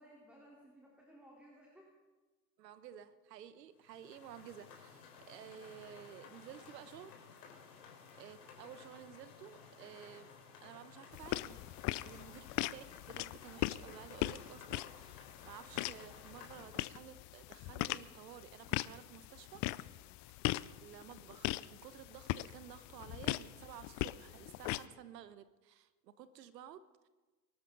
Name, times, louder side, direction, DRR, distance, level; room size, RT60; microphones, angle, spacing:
voice 1, 0.0-1.9 7.7-7.9 12.1-12.3 20.0-20.2, equal, 5° right, -3 dB, 3.9 m, -60 dB
voice 2, 2.6-7.1 8.2-19.6 20.6-27.1, right 10 dB, 75° right, 14 dB, 1.2 m, -53 dB
sound 1, 3.8-16.7, left 6 dB, 70° left, 4.3 m, -56 dB
sound 2, 11.1-24.8, left 18 dB, 35° left, 0.5 m, -40 dB
24.0 x 13.0 x 4.0 m, 1.3 s
hypercardioid pair, 85°, 50 cm